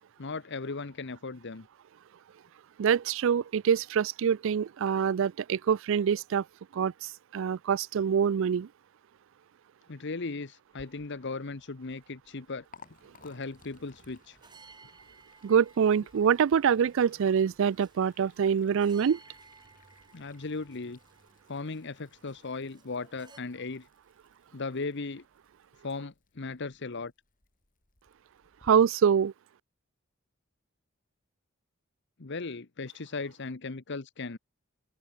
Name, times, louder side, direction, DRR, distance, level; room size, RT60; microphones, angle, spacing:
voice 1, 0.2-1.7 9.9-12.7 13.2-14.4 20.1-21.0 21.5-23.9 24.5-25.2 25.8-27.1 32.2-34.4, left 3 dB, 60° left, 1.0 m, -37 dB
voice 2, 2.8-6.4 6.7-8.7 15.4-19.2 28.6-29.3, right 7 dB, 65° right, 0.4 m, -25 dB
Liquid, 10.7-28.7, left 4 dB, 40° left, 3.9 m, -61 dB
sound 1, 13.4-23.4, right 4 dB, 20° right, 3.8 m, -59 dB
open air
head